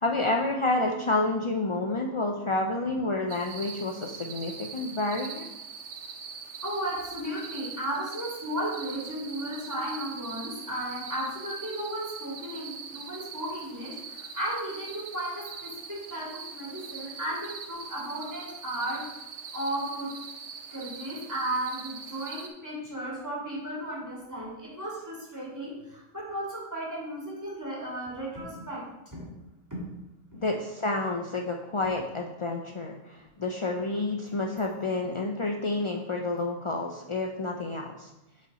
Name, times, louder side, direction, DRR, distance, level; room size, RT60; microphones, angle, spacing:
voice 1, 0.0-5.5 30.4-38.1, left 2 dB, 50° left, 2 dB, 0.3 m, -29 dB
sound 1, 3.3-22.5, right 6 dB, 65° right, 1.1 m, -42 dB
voice 2, 6.6-19.0 19.5-20.1 20.7-28.8 29.1-29.3 29.7-29.9 30.3-30.4, right 1 dB, 15° right, -6 dB, 2.6 m, -35 dB
7.9 x 5.6 x 4.1 m, 0.93 s
omnidirectional pair, 1.3 m